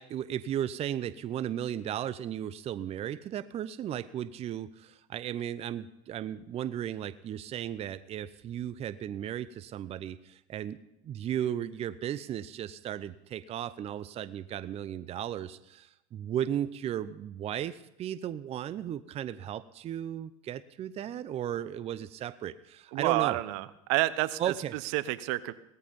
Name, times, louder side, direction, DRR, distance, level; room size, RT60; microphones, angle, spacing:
voice 1, 0.0-10.8 11.0-23.4 24.4-24.7, right 10 dB, 35° right, 16 dB, 0.7 m, -35 dB
voice 2, 22.9-24.5 24.9-25.5, right 18 dB, 65° right, 17 dB, 0.9 m, -29 dB
17.5 x 14.0 x 5.3 m, 0.87 s
hypercardioid pair, 90°, 17 cm